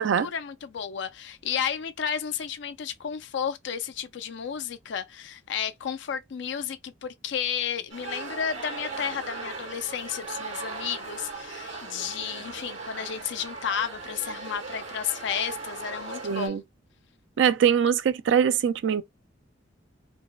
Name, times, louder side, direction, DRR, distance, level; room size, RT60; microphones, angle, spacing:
voice 1, 0.2-16.6, left 8 dB, 65° left, 0.4 m, -32 dB
sound 1, 7.9-16.5, right 3 dB, 80° right, 1.7 m, -38 dB
voice 2, 16.2-16.6 17.4-19.0, right 8 dB, 65° right, 0.3 m, -22 dB
4.6 x 2.1 x 2.2 m
head